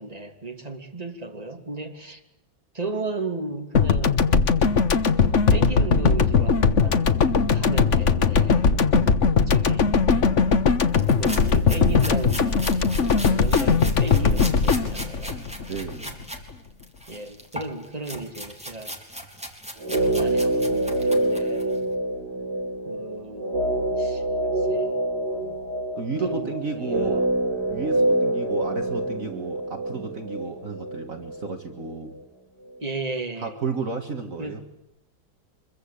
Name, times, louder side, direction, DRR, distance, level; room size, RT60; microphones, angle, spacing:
voice 1, 0.0-2.2 2.7-4.2 5.5-8.7 9.5-10.0 11.2-15.5 17.1-18.9 19.9-21.7 22.9-23.6 24.0-24.2 24.6-24.9 25.4-25.7 26.2-27.2 32.8-33.5 34.4-34.7, right 3 dB, 20° right, 4 dB, 3.0 m, -35 dB
sound 1, 3.8-16.2, left 5 dB, 45° left, 1.4 m, -20 dB
voice 2, 8.9-9.4 15.7-16.2 26.0-27.3 27.7-32.2 33.4-34.6, right 4 dB, 45° right, 5 dB, 2.2 m, -32 dB
sound 2, 10.9-16.4 16.8-21.8, equal, 5° right, 3.7 m, -38 dB
sound 3, 19.8-32.2, right 1 dB, 70° right, 7.1 m, -26 dB
25.5 x 22.5 x 8.5 m, 0.87 s
omnidirectional pair, 2.0 m